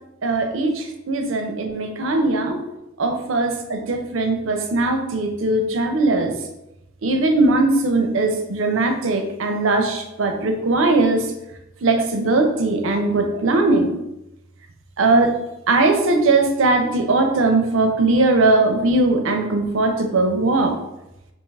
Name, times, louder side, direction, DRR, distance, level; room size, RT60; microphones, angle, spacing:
voice 1, 0.2-2.6 3.0-6.3 7.0-11.3 11.8-13.9 15.0-15.3 15.7-20.7, right 2 dB, 75° right, 5 dB, 0.5 m, -19 dB
3.5 x 2.8 x 3.3 m, 0.90 s
head